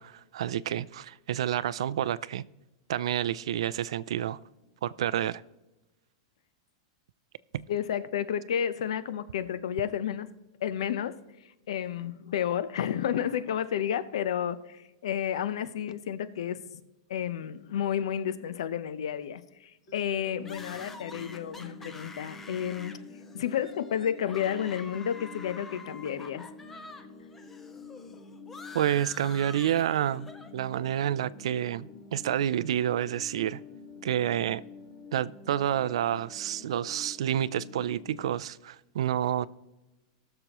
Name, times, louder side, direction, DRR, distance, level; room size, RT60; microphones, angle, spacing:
voice 1, 0.0-2.4 2.9-4.4 4.8-5.4 7.5-7.6 28.7-33.6 34.0-34.6 35.1-39.5, right 11 dB, 80° right, 0.4 m, -29 dB
voice 2, 7.7-10.3 10.6-16.8 17.1-23.0 23.3-26.4, left 9 dB, 75° left, 0.7 m, -31 dB
sound 1, 19.9-38.3, left 4 dB, 25° left, 1.9 m, -48 dB
sound 2, 20.4-27.0 27.3-30.5, left 3 dB, 10° left, 0.5 m, -47 dB
19.5 x 6.8 x 3.0 m
supercardioid pair, 180°, 3 cm